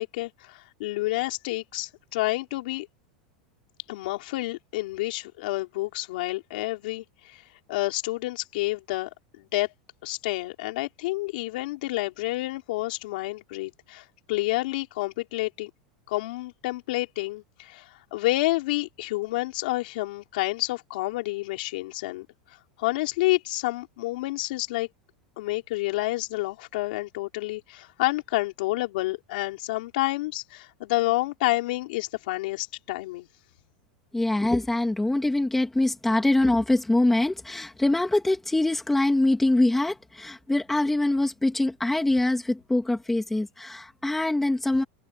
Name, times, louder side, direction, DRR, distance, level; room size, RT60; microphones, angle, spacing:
voice 1, 0.0-2.9 3.9-7.4 7.7-9.1 9.4-9.7 10.0-15.7 16.1-22.3 22.8-24.9 25.4-33.3, left 19 dB, 60° left, 4.6 m, -29 dB
voice 2, 34.1-44.8, left 2 dB, 5° left, 2.7 m, -24 dB
open air
supercardioid pair, 175°, 5 cm